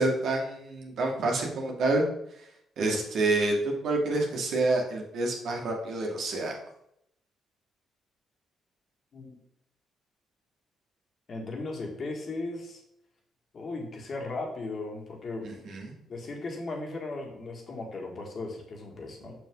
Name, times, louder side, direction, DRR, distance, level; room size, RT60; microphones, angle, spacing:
voice 1, 0.0-2.0 2.8-6.5 15.4-15.9, right 2 dB, 70° right, 0 dB, 2.0 m, -28 dB
voice 2, 11.3-12.8 13.5-15.8 16.1-19.3, left 2 dB, 45° left, 1 dB, 2.0 m, -37 dB
6.4 x 6.2 x 3.9 m, 0.76 s
cardioid pair, 90°, 0 cm